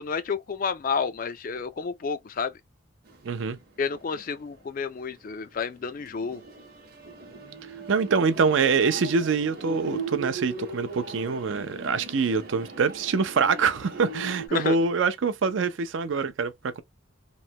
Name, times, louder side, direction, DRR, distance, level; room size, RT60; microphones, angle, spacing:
voice 1, 0.0-2.5 3.8-6.4 14.5-14.8, left 5 dB, 40° left, 0.3 m, -30 dB
sound 1, 3.1-4.4 4.7-4.8 5.5-14.5, right 3 dB, 45° right, 0.8 m, -39 dB
voice 2, 3.2-3.6 7.9-16.8, right 5 dB, 65° right, 0.4 m, -25 dB
3.1 x 2.1 x 2.7 m
head